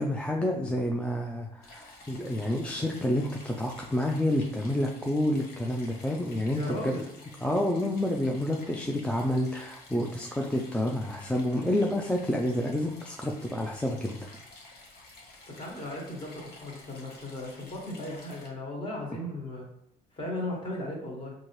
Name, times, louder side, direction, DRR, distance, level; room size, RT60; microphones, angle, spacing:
voice 1, 0.0-6.9 7.4-14.2, left 1 dB, 5° left, 0 dB, 0.4 m, -29 dB
sound 1, 1.6-18.5, left 2 dB, 70° left, 1.1 m, -51 dB
voice 2, 6.5-7.1 15.5-19.7 20.1-21.3, left 1 dB, 30° left, -2 dB, 1.4 m, -36 dB
4.3 x 2.7 x 3.0 m, 0.72 s
cardioid pair, 110°, 17 cm